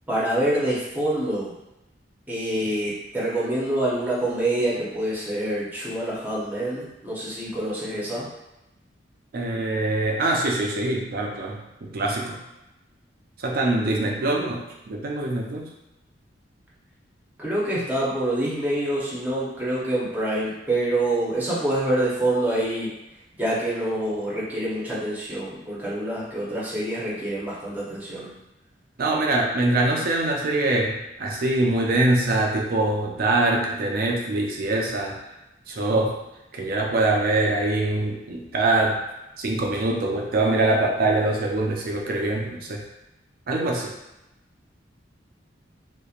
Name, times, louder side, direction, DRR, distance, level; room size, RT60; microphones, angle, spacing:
voice 1, 0.1-1.5 2.3-8.3 13.8-13.9 17.4-22.9 23.4-28.3, right 1 dB, 10° right, -7 dB, 0.7 m, -26 dB
voice 2, 9.3-12.4 13.4-15.8 29.0-35.2 35.7-36.2 36.5-39.0 39.4-42.8 43.5-43.9, right 2 dB, 50° right, 0 dB, 0.4 m, -24 dB
2.8 x 2.1 x 2.4 m, 0.94 s
head